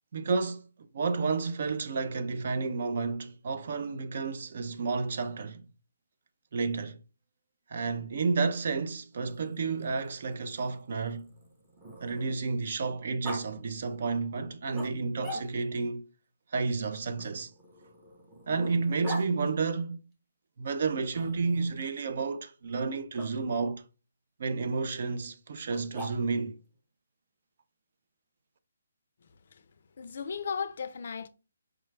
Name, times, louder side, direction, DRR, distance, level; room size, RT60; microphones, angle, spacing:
voice 1, 0.1-0.7 0.9-5.6 6.5-7.0 7.7-11.3 12.0-16.0 16.5-17.5 18.5-20.0 20.6-23.8 24.4-26.6, right 4 dB, 45° right, 0.4 m, -31 dB
Growling, 9.1-12.5 13.2-13.4 14.7-15.8 17.2-19.3 21.1-21.8 23.1-23.3 25.7-26.5, right 1 dB, 10° right, 0.7 m, -43 dB
voice 2, 29.2-29.7 30.0-31.3, left 6 dB, 50° left, 0.4 m, -36 dB
4.9 x 2.2 x 3.2 m
hypercardioid pair, 170°, 0 cm